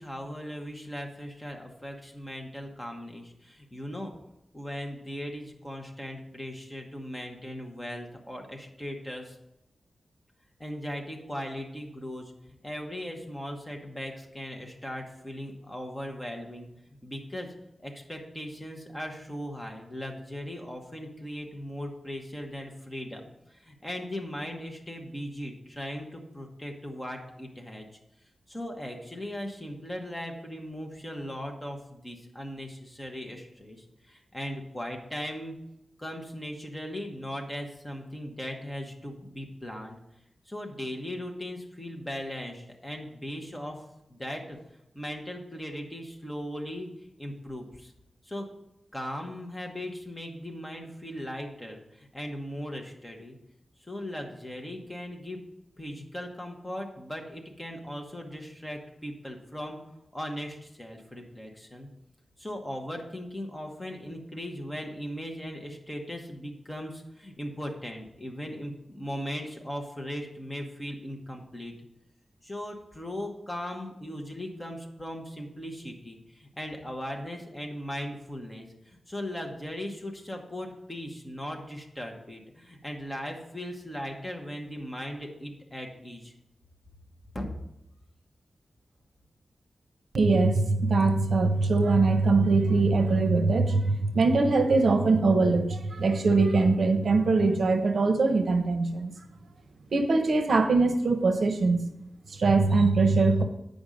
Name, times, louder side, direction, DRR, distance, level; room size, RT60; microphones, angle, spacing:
voice 1, 0.0-4.1 4.5-9.4 10.6-12.3 12.6-16.7 17.0-17.5 17.8-23.2 23.5-27.9 28.5-35.5 36.0-40.0 40.5-43.8 44.1-44.6 44.9-47.9 48.2-48.5 48.9-53.3 53.8-55.4 55.8-59.8 60.1-61.9 62.4-71.7 72.4-86.3 87.3-87.5, equal, 10° left, 1 dB, 1.1 m, -38 dB
voice 2, 90.1-99.1 99.9-101.8 102.3-103.4, right 3 dB, 65° right, 7 dB, 0.7 m, -22 dB
8.9 x 5.2 x 5.1 m, 0.84 s
wide cardioid pair, 155°, 0 cm